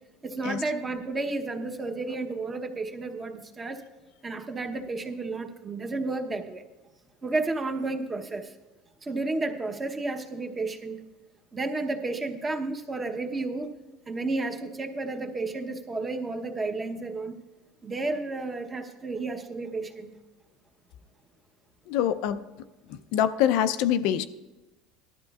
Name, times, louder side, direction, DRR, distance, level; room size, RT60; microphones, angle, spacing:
voice 1, 0.2-3.8 4.2-6.6 7.2-8.5 9.0-11.0 11.5-13.7 14.1-17.4 17.8-20.1, right 3 dB, 20° right, 4 dB, 0.9 m, -32 dB
voice 2, 21.9-22.4 23.1-24.3, left 10 dB, 70° left, 11 dB, 0.5 m, -24 dB
18.5 x 12.0 x 2.4 m, 1.1 s
cardioid pair, 140°, 0 cm